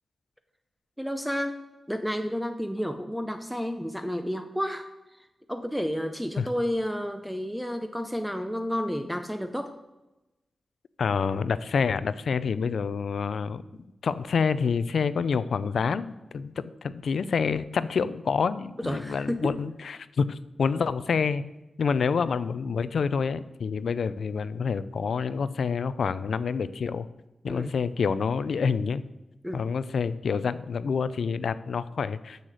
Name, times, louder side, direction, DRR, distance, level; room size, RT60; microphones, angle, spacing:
voice 1, 1.0-1.6 1.9-4.9 5.2-9.7 18.8-19.4 27.5-27.7 29.4-29.6, equal, ahead, 7 dB, 0.6 m, -31 dB
voice 2, 11.0-13.6 14.0-21.4 21.8-27.1 27.4-29.1 29.5-32.4, left 5 dB, 80° left, 15 dB, 0.4 m, -27 dB
6.7 x 6.3 x 7.5 m, 1.0 s
wide cardioid pair, 85°, 0 cm